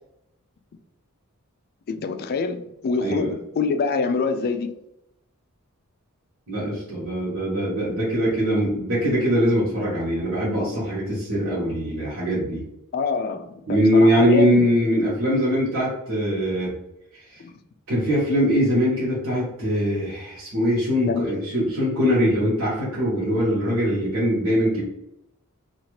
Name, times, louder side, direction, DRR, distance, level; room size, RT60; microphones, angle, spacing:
voice 1, 1.9-4.7 12.9-14.6 17.4-17.5 21.1-21.3, left 4 dB, 45° left, 0.3 m, -25 dB
voice 2, 6.5-12.6 13.7-16.7 17.1-17.2 17.9-24.8, equal, 65° right, 1.1 m, -22 dB
2.8 x 2.4 x 3.1 m
head